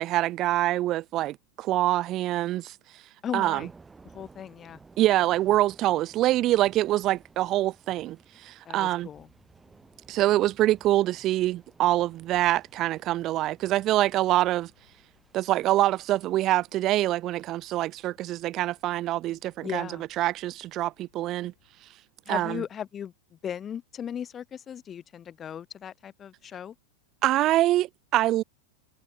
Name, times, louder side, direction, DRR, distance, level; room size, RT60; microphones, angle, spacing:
voice 1, 0.0-2.7 3.3-3.7 5.0-9.1 10.1-14.7 15.3-19.9 20.2-21.5 22.3-22.6 27.2-28.4, right 15 dB, 35° right, 0.3 m, -25 dB
voice 2, 3.2-3.7 4.1-4.8 8.6-9.3 19.6-20.0 22.3-26.7, left 8 dB, 25° left, 1.1 m, -37 dB
Thunder / Rain, 3.5-17.3, right 4 dB, 10° right, 2.6 m, -56 dB
sound 1, 9.1-21.9, left 18 dB, 50° left, 6.5 m, -69 dB
figure-of-eight pair, 90°, 0 cm